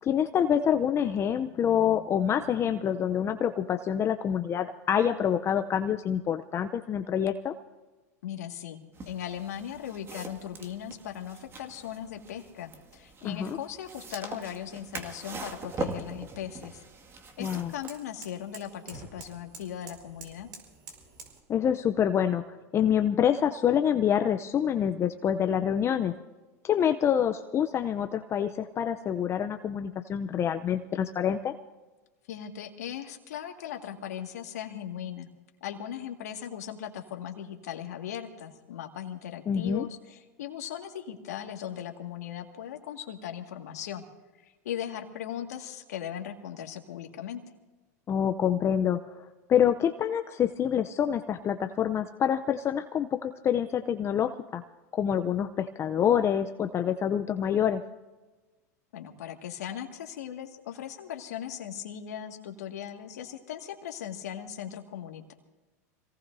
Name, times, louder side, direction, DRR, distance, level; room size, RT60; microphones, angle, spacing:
voice 1, 0.0-7.5 13.2-13.6 17.4-17.7 21.5-26.1 26.6-31.5 39.5-39.8 48.1-49.0 49.5-54.6 54.9-57.8, left 9 dB, 30° left, 8 dB, 0.6 m, -26 dB
voice 2, 8.2-16.8 17.4-20.5 32.3-35.3 35.6-44.0 44.4-47.4 58.9-65.3, left 10 dB, 80° left, 3 dB, 2.0 m, -38 dB
sound 1, 8.9-17.9, right 3 dB, 30° right, 2.1 m, -42 dB
sound 2, 14.6-21.4, right 5 dB, 50° right, 4.9 m, -51 dB
26.0 x 18.0 x 2.7 m, 1.2 s
hypercardioid pair, 105°, 9 cm